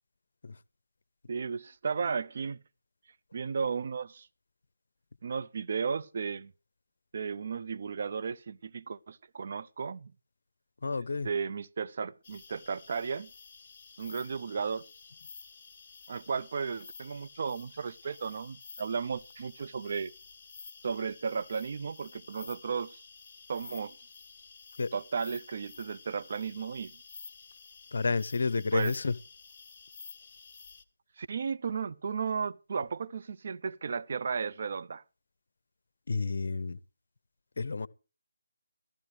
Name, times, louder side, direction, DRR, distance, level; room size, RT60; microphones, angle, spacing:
voice 1, 1.3-2.6 3.3-4.3 5.2-6.5 7.1-10.1 11.2-13.3 14.0-14.9 16.1-20.1 20.8-23.0 23.5-24.0 24.9-26.9 28.7-28.9 31.2-35.0, right 5 dB, 45° right, 0.6 m, -34 dB
voice 2, 10.8-11.3 24.8-24.9 27.9-29.2 36.1-36.8 37.6-37.9, left 4 dB, 55° left, 0.7 m, -30 dB
sound 1, 12.2-30.8, left 5 dB, 30° left, 1.2 m, -51 dB
14.5 x 14.0 x 3.3 m
figure-of-eight pair, 155°, 0 cm